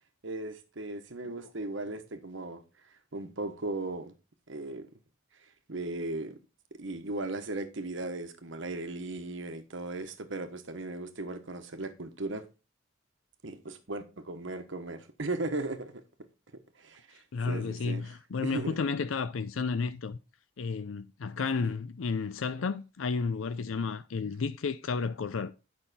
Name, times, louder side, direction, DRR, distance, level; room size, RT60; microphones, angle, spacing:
voice 1, 0.2-2.6 3.1-4.1 4.5-4.9 5.7-6.4 6.8-12.5 13.4-16.0 16.8-18.1 18.4-18.8 21.4-21.7, right 2 dB, 65° right, 1.1 m, -37 dB
voice 2, 17.3-20.2 20.6-25.5, left 4 dB, 75° left, 0.5 m, -32 dB
9.1 x 5.7 x 4.1 m
head